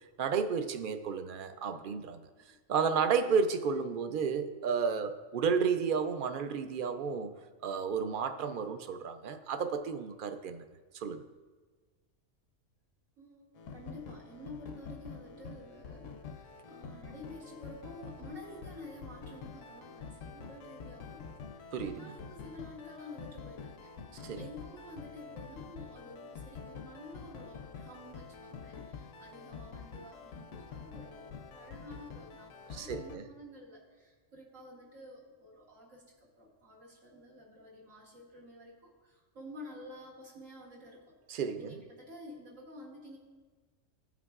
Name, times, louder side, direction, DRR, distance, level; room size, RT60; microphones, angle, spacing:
voice 1, 0.0-2.2 2.7-7.3 7.6-10.6 10.9-11.2 21.7-22.1 24.2-24.4 32.7-33.2 41.3-41.8, right 6 dB, 60° right, 9 dB, 0.5 m, -32 dB
voice 2, 1.7-2.6 13.2-23.9 24.1-36.0 36.4-41.2 41.6-43.2, left 1 dB, 80° right, -4 dB, 2.3 m, -50 dB
sound 1, 13.6-33.2, left 5 dB, 75° left, 0.9 m, -47 dB
15.5 x 5.8 x 2.4 m, 1.4 s
omnidirectional pair, 1.3 m